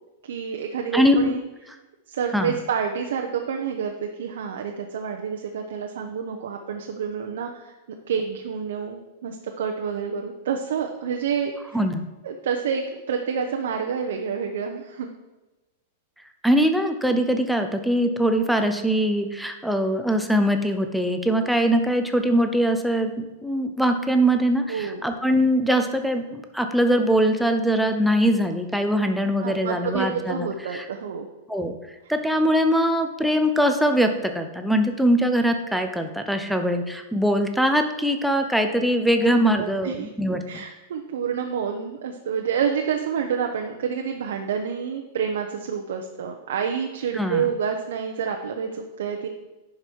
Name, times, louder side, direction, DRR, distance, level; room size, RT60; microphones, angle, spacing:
voice 1, 0.3-1.4 2.1-7.7 8.1-11.8 12.2-12.8 13.1-15.1 24.7-25.0 29.4-31.3 39.2-39.3 39.6-40.1 40.5-49.3, right 7 dB, 80° right, 3 dB, 0.8 m, -28 dB
voice 2, 0.9-1.4 2.3-2.5 11.7-12.1 16.4-30.9 31.5-31.8 32.1-40.6 47.1-47.5, equal, ahead, 6 dB, 0.6 m, -22 dB
10.5 x 5.3 x 4.5 m, 1.1 s
supercardioid pair, 165°, 0 cm